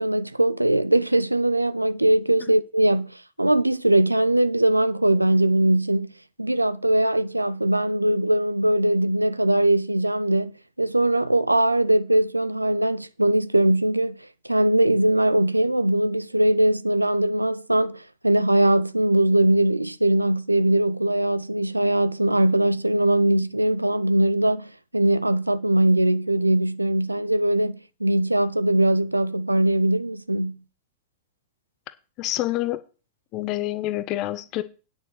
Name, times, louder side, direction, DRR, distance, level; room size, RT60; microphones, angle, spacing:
voice 1, 0.0-6.1 6.4-10.5 10.8-14.2 14.4-30.6, right 1 dB, 85° right, 0.5 m, -21 dB
voice 2, 32.2-32.8 33.3-34.6, left 15 dB, 40° left, 1.0 m, -27 dB
9.6 x 6.8 x 6.4 m
figure-of-eight pair, 90°, 0 cm